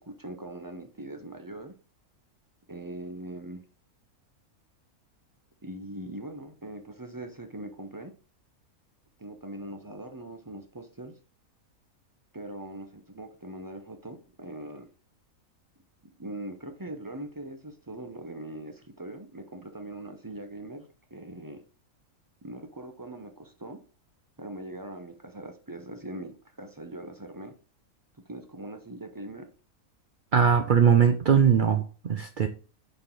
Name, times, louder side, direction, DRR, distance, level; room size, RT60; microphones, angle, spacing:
voice 1, 0.0-1.7 2.7-3.6 5.6-8.1 9.2-11.2 12.3-14.9 16.2-21.6 22.4-23.8 24.4-27.5 28.3-29.5, right 1 dB, 20° right, 0.5 m, -41 dB
voice 2, 30.3-32.5, right 7 dB, 80° right, 0.4 m, -21 dB
5.6 x 4.3 x 4.5 m
omnidirectional pair, 1.5 m